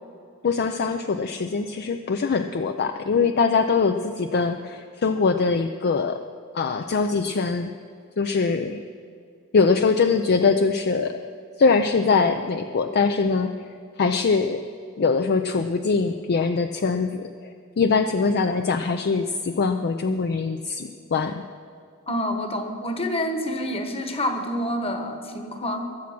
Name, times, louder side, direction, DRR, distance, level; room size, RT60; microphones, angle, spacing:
voice 1, 0.4-6.2 6.5-7.7 8.2-8.8 9.5-11.2 11.6-13.5 14.0-14.6 15.0-21.4, left 4 dB, 50° left, 7 dB, 0.5 m, -22 dB
voice 2, 22.1-25.9, left 1 dB, 25° left, 5 dB, 1.4 m, -27 dB
22.0 x 7.4 x 6.1 m, 2.3 s
head